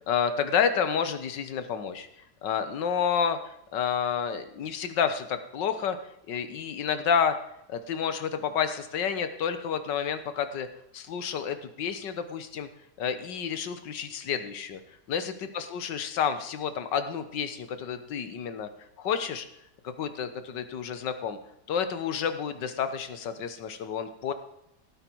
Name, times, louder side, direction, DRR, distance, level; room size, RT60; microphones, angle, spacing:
voice 1, 0.0-2.1 2.4-6.0 6.3-7.4 7.7-10.7 10.9-12.7 13.0-14.8 15.1-18.7 19.0-19.5 19.8-21.4 21.7-24.3, left 7 dB, 85° left, 10 dB, 1.8 m, -30 dB
17.0 x 9.4 x 4.6 m, 0.80 s
omnidirectional pair, 1.9 m